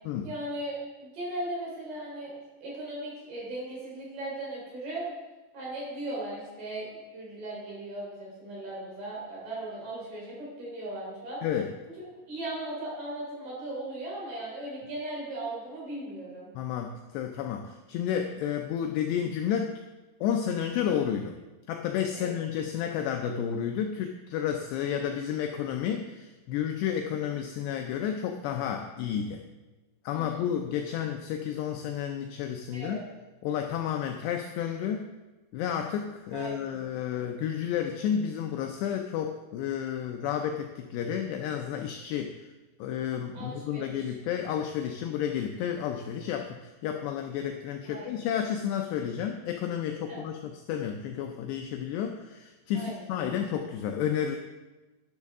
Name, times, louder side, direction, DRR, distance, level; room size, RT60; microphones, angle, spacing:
voice 1, 0.2-2.3 2.6-5.1 5.5-11.4 12.0-16.5 22.2-22.4 30.1-30.5 32.7-33.0 36.3-36.8 43.3-44.0 47.9-48.3 50.1-50.2 52.7-53.1, right 1 dB, 50° right, -5 dB, 5.3 m, -38 dB
voice 2, 11.4-11.7 16.6-19.8 20.2-21.4 21.7-29.4 30.0-33.1 33.4-35.1 35.5-42.4 42.8-50.4 50.7-54.4, left 9 dB, 90° left, 4 dB, 2.4 m, -31 dB
12.0 x 10.5 x 3.6 m, 1.2 s
omnidirectional pair, 5.6 m